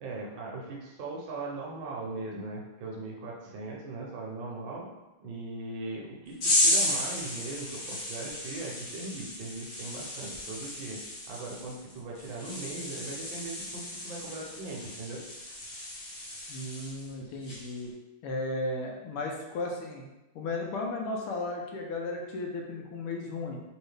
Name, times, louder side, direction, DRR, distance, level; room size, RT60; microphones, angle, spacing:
voice 1, 0.0-4.9 5.2-11.0 11.3-15.2, right 2 dB, 70° right, -3 dB, 1.4 m, -39 dB
sound 1, 6.4-17.1 17.4-17.8, left 1 dB, 60° left, 0.6 m, -33 dB
voice 2, 16.5-17.9 18.2-20.1 20.4-23.6, left 2 dB, 90° left, 0 dB, 1.6 m, -35 dB
3.6 x 3.1 x 3.2 m, 1.0 s
omnidirectional pair, 2.4 m